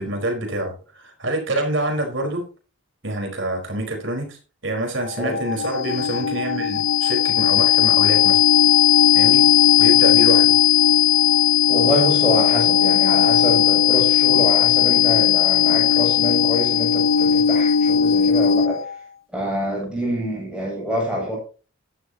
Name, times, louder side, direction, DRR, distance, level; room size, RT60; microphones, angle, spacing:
voice 1, 0.0-2.4 3.0-8.4 9.1-9.5 9.8-10.6, right 1 dB, 60° right, 3 dB, 4.8 m, -26 dB
sound 1, 5.1-18.9, left 9 dB, 65° left, 0.7 m, -17 dB
voice 2, 11.7-18.9 19.3-21.4, equal, 5° right, -3 dB, 8.0 m, -26 dB
15.5 x 11.5 x 3.0 m, 0.35 s
head